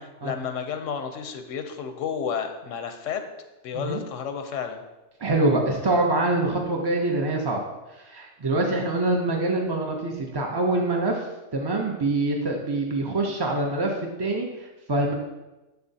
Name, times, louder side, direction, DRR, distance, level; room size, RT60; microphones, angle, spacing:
voice 1, 0.2-3.2 3.6-4.8, left 7 dB, 85° left, 7 dB, 1.0 m, -31 dB
voice 2, 5.2-7.6 7.9-11.3 11.5-15.1, right 2 dB, 35° right, 0 dB, 0.4 m, -25 dB
6.9 x 6.8 x 2.7 m, 1.1 s
omnidirectional pair, 1.3 m